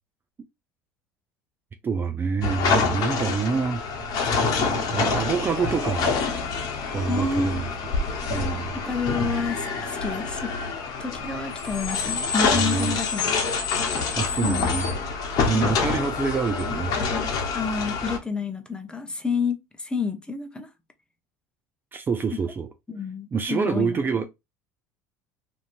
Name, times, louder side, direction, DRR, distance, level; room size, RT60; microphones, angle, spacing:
voice 1, 1.8-3.8 4.9-6.1 6.9-7.7 8.3-8.7 12.5-13.0 14.1-16.9 21.9-22.7 23.3-24.3, right 5 dB, 25° right, 0.4 m, -26 dB
sound 1, 2.4-18.2, left 5 dB, 50° left, 0.9 m, -26 dB
voice 2, 7.1-7.5 8.8-10.5 11.0-13.6 14.4-14.8 15.5-15.7 17.5-20.7 22.9-24.0, left 4 dB, 10° left, 0.7 m, -29 dB
3.0 x 2.6 x 2.5 m
supercardioid pair, 95°, 8 cm